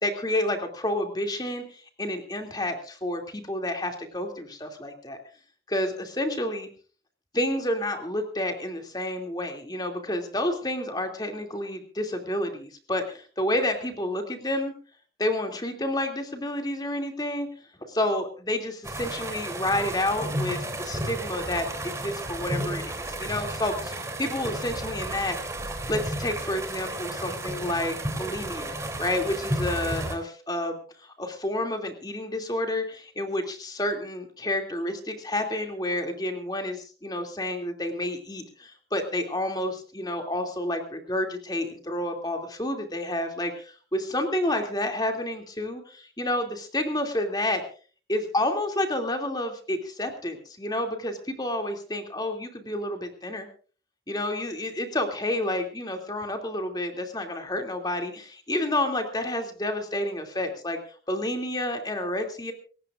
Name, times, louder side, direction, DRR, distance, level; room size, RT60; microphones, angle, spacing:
voice 1, 0.0-5.2 5.7-6.7 7.3-14.7 15.2-17.5 17.9-25.4 25.9-47.6 48.1-53.5 54.1-60.8 61.1-62.5, left 1 dB, 20° left, 4 dB, 2.7 m, -30 dB
sound 1, 18.8-30.2, right 1 dB, 15° right, 3.2 m, -33 dB
28.0 x 15.5 x 2.5 m, 0.40 s
head